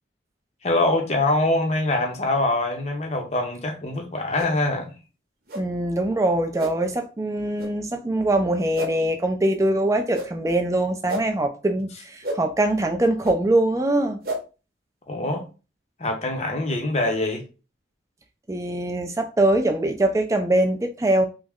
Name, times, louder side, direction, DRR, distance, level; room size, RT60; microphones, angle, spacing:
voice 1, 0.6-4.9 15.1-15.5 16.0-17.4, left 2 dB, 35° left, 0.6 m, -24 dB
sound 1, 4.3-4.5 5.5-5.6 6.6-6.7 7.6-7.7 8.7-8.9 10.1-10.3 11.1-11.2 12.2-12.4 13.2-13.3 14.2-14.4, equal, 50° right, 0.8 m, -30 dB
voice 2, 5.5-14.2 18.5-21.2, right 1 dB, 15° right, 0.4 m, -23 dB
3.1 x 2.1 x 3.5 m
head